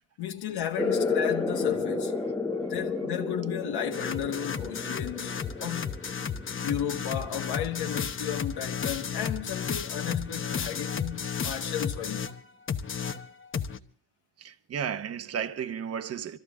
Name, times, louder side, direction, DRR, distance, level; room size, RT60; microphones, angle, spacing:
voice 1, 0.2-2.1 2.7-5.9 6.6-12.2, left 10 dB, 80° left, 1.5 m, -34 dB
sound 1, 0.7-7.9, left 4 dB, 10° left, 0.9 m, -32 dB
sound 2, 3.9-12.4 12.7-13.8, left 6 dB, 30° left, 1.0 m, -33 dB
voice 2, 14.4-16.4, right 8 dB, 40° right, 1.0 m, -34 dB
25.0 x 14.5 x 3.6 m
cardioid pair, 150°, 38 cm